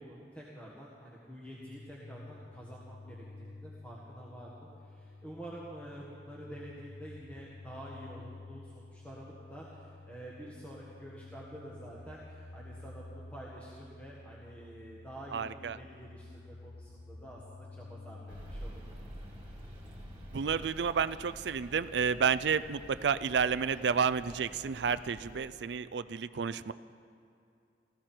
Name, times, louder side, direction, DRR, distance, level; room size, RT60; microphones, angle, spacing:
voice 1, 0.0-18.8, right 1 dB, 10° left, -6 dB, 1.6 m, -48 dB
sound 1, 1.5-20.7, left 2 dB, 90° left, 0.7 m, -51 dB
voice 2, 15.3-15.8 20.3-26.7, right 6 dB, 70° right, 14 dB, 0.4 m, -31 dB
sound 2, 18.3-25.4, equal, 30° right, 2.3 m, -48 dB
19.5 x 15.0 x 4.5 m, 2.6 s
head